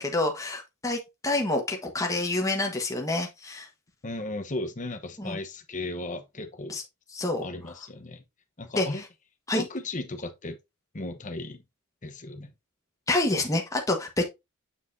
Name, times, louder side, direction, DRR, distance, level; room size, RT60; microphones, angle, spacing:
voice 1, 0.0-3.7 5.2-5.4 6.7-6.8 7.1-7.4 8.7-9.0 9.5-9.7 13.1-14.3, left 2 dB, 15° left, 1.3 m, -27 dB
voice 2, 4.0-6.8 7.4-8.2 8.6-9.0 9.5-10.6 10.9-11.6 12.0-12.5, left 2 dB, 35° left, 1.0 m, -35 dB
7.2 x 6.2 x 2.7 m
head